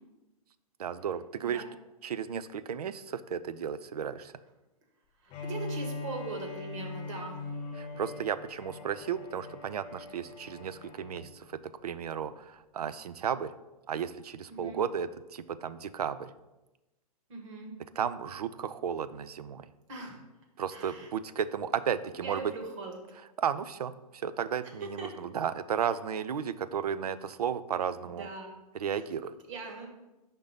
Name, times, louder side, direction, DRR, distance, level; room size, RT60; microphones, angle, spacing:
voice 1, 0.8-1.6 2.0-4.3 7.7-11.4 11.8-13.5 13.9-16.3 18.0-19.7 20.6-22.5 23.4-28.3 28.7-29.3, right 8 dB, 80° right, 13 dB, 0.4 m, -34 dB
Bowed string instrument, 5.3-11.3, left 2 dB, 30° left, 1.1 m, -41 dB
voice 2, 5.4-7.4 14.5-14.8 17.3-17.7 19.9-20.2 20.7-21.1 22.2-23.0 25.0-25.1 28.0-28.5 29.5-29.9, right 3 dB, 55° right, 2 dB, 1.5 m, -40 dB
5.2 x 3.8 x 5.5 m, 1.0 s
figure-of-eight pair, 110°, 20 cm